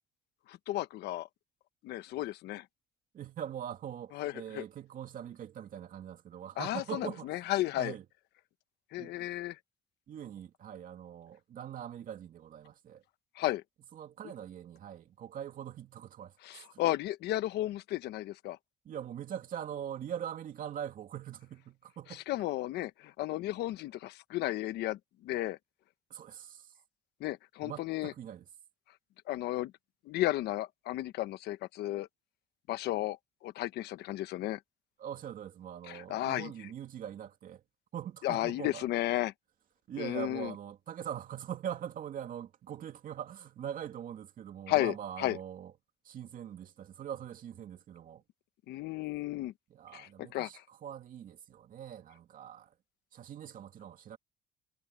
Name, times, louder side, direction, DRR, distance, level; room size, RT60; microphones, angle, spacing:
voice 1, 0.5-1.3 1.8-2.6 4.1-4.6 6.6-7.9 8.9-9.6 13.4-13.6 16.4-18.6 22.1-25.6 27.2-28.1 29.3-29.7 30.0-32.1 32.7-33.2 33.4-34.6 35.9-36.5 38.2-39.3 40.0-40.5 44.7-45.4 48.7-49.5 49.9-50.6, left 15 dB, 80° left, 1.2 m, -33 dB
voice 2, 3.1-7.5 7.8-8.0 9.0-9.1 10.1-13.0 13.9-16.8 18.8-22.2 26.1-26.7 27.6-28.4 35.0-37.6 37.9-38.8 39.9-45.7 46.0-48.2 49.7-52.7 53.1-54.2, right 9 dB, 55° right, 2.5 m, -42 dB
cardioid pair, 110°, 17 cm